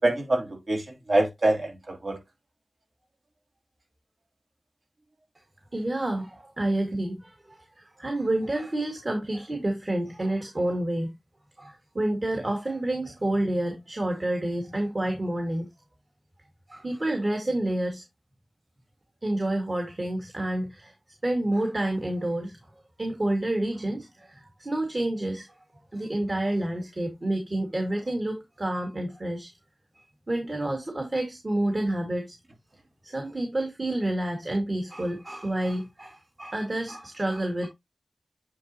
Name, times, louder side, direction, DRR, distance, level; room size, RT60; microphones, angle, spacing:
voice 1, 0.0-2.2, right 2 dB, 65° right, 2.9 m, -25 dB
voice 2, 5.7-11.1 11.6-15.7 16.7-18.0 19.2-20.9 21.2-22.6 23.0-25.5 25.9-29.5 30.3-32.4 33.0-37.7, right 1 dB, 40° right, 1.9 m, -29 dB
9.1 x 4.1 x 2.8 m
wide cardioid pair, 75°, 0 cm